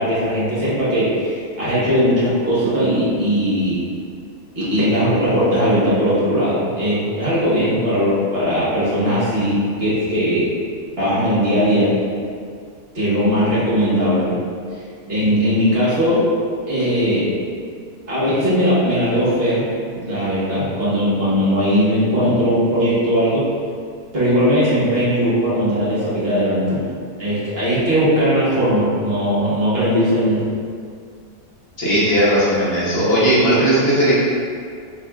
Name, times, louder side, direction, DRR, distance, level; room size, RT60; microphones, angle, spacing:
voice 1, 0.0-3.8 4.5-10.5 11.0-12.0 12.9-14.3 15.1-16.3 16.7-17.3 18.1-19.6 19.9-23.5 24.1-26.8 27.2-30.4, equal, 40° right, -10 dB, 1.4 m, -18 dB
voice 2, 31.8-34.1, right 1 dB, 45° left, -8 dB, 1.0 m, -16 dB
4.9 x 3.4 x 2.3 m, 2.2 s
omnidirectional pair, 1.7 m